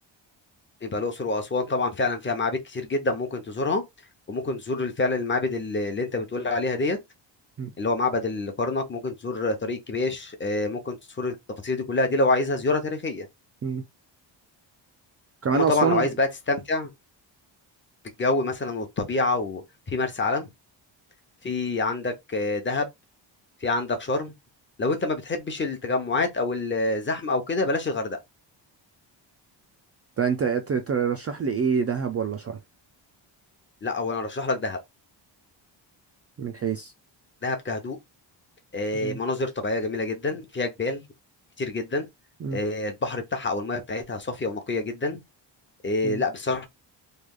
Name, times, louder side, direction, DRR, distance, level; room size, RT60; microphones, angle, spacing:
voice 1, 0.8-3.8 4.3-7.0 7.8-11.3 11.6-13.3 15.5-16.9 18.2-19.6 19.9-20.5 21.4-22.9 23.6-24.3 24.8-28.2 33.8-34.8 37.4-38.0 38.7-41.0 41.6-42.1 42.5-45.2 45.8-46.7, left 3 dB, 25° left, 0.8 m, -27 dB
voice 2, 15.4-16.0 30.2-32.6 36.4-36.9 39.0-39.2 42.4-42.6 46.0-46.2, right 6 dB, 35° right, 0.4 m, -26 dB
3.2 x 2.3 x 3.7 m
wide cardioid pair, 175°, 45 cm